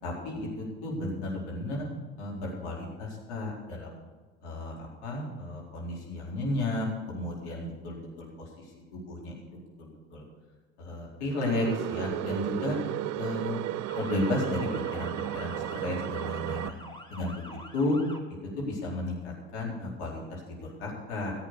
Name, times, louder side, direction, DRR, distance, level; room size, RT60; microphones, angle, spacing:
voice 1, 0.0-1.8 2.2-4.0 4.4-10.2 10.8-12.8 13.1-13.6 13.9-16.8 17.1-17.4 17.7-18.0 18.6-21.3, left 2 dB, 70° left, -2 dB, 4.4 m, -33 dB
sound 1, 11.3-16.7, right 14 dB, 50° right, 0.6 m, -34 dB
Motor vehicle (road) / Siren, 13.9-18.2, equal, 15° left, 1.9 m, -45 dB
15.0 x 8.1 x 6.8 m, 1.4 s
hypercardioid pair, 70°, 35 cm